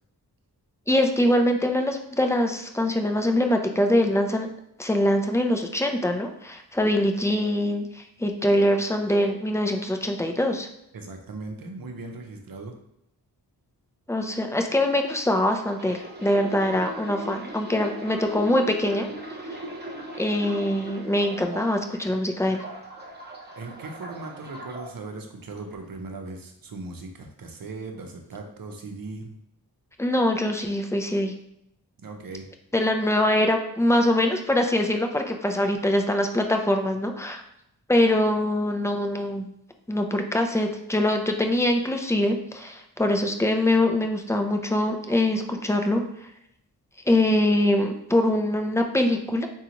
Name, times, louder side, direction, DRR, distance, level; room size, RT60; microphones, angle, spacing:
voice 1, 0.9-4.5 4.8-10.7 14.1-19.6 20.2-22.6 30.0-31.3 32.7-37.4 37.9-39.5 39.9-46.0 47.1-49.5, left 1 dB, 5° left, 4 dB, 0.4 m, -23 dB
voice 2, 10.9-12.8 23.6-29.4 32.0-32.5, right 3 dB, 55° right, 3 dB, 0.7 m, -38 dB
sound 1, 15.5-22.0 22.4-24.9 25.5-25.7, right 1 dB, 25° right, 0.9 m, -39 dB
3.8 x 2.4 x 2.9 m, 0.76 s
cardioid pair, 45°, 40 cm